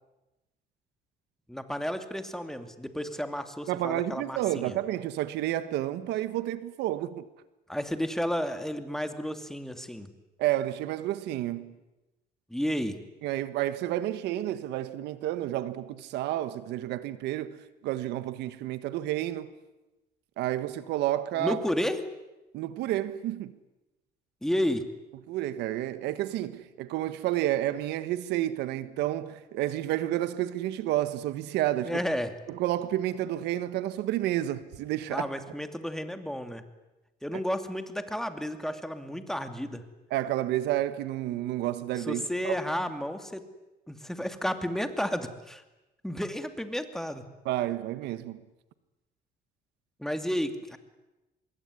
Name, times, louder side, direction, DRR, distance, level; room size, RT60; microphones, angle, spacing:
voice 1, 1.5-4.7 7.7-10.1 12.5-13.0 21.4-22.0 24.4-24.9 31.8-32.3 35.1-36.6 37.2-39.8 42.0-43.4 43.9-45.6 46.0-47.2 50.0-50.8, equal, 5° left, 2.6 m, -32 dB
voice 2, 3.7-7.2 10.4-11.7 13.2-19.5 20.4-21.6 22.5-23.5 25.3-32.0 32.5-35.3 37.3-37.4 40.1-42.6 47.4-48.4, right 14 dB, 85° right, 1.5 m, -30 dB
25.0 x 22.0 x 9.8 m
cardioid pair, 110°, 17 cm